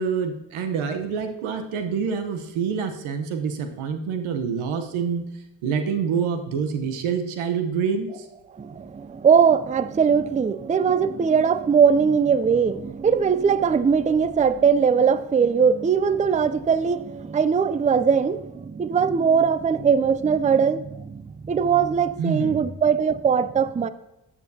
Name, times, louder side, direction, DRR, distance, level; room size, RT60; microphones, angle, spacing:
voice 1, 0.0-5.2 5.6-8.2 22.2-22.7, right 6 dB, 85° right, 6 dB, 1.1 m, -26 dB
voice 2, 8.6-23.9, right 6 dB, 15° right, 14 dB, 0.4 m, -20 dB
13.0 x 7.3 x 2.8 m, 0.93 s
supercardioid pair, 45°, 48 cm